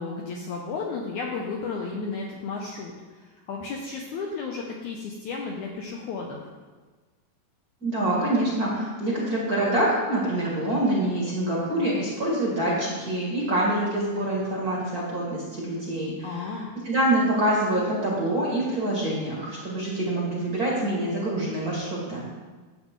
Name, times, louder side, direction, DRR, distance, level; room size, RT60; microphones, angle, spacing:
voice 1, 0.0-2.9 3.2-6.5 16.2-16.7, left 4 dB, 75° left, 0 dB, 1.8 m, -33 dB
voice 2, 7.8-16.5 16.8-22.2, right 1 dB, 35° right, -5 dB, 1.5 m, -26 dB
11.0 x 7.8 x 3.7 m, 1.4 s
omnidirectional pair, 4.3 m